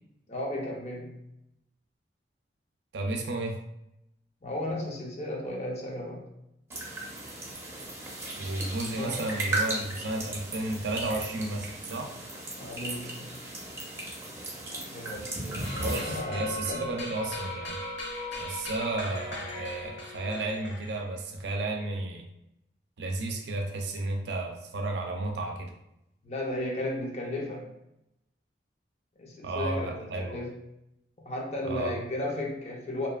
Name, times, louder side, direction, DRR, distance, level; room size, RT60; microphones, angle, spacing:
voice 1, 0.3-1.2 4.4-6.3 8.9-9.3 12.6-13.3 14.7-16.9 26.3-27.7 29.2-30.5 31.2-33.1, left 1 dB, 35° left, -1 dB, 0.4 m, -35 dB
voice 2, 2.9-3.6 8.4-12.1 15.6-17.8 18.3-22.2 23.0-25.7 29.4-30.4 31.6-32.0, right 2 dB, 75° right, 2 dB, 0.4 m, -33 dB
sound 1, 6.7-16.2, right 2 dB, 15° right, 0.5 m, -36 dB
sound 2, 15.6-21.2, left 2 dB, 85° left, 0.8 m, -38 dB
2.7 x 2.3 x 2.3 m, 0.83 s
head